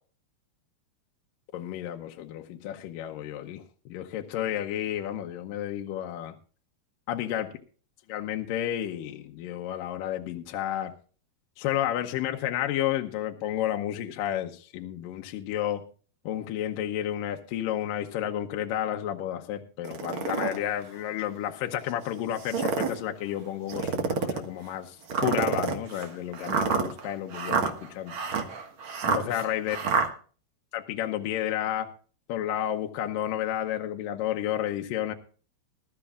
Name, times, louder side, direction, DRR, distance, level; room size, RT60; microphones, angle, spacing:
voice 1, 1.5-3.6 3.9-6.4 7.1-7.5 8.1-10.9 11.6-15.8 16.3-28.2 29.1-29.8 30.7-31.9 32.3-35.1, left 11 dB, 75° left, 4 dB, 2.3 m, -31 dB
sound 1, 19.8-20.6 21.2-21.3 22.3-23.0 23.7-24.4 25.1-30.1, right 5 dB, 50° right, 1.6 m, -28 dB
21.0 x 12.5 x 2.4 m, 0.39 s
omnidirectional pair, 4.5 m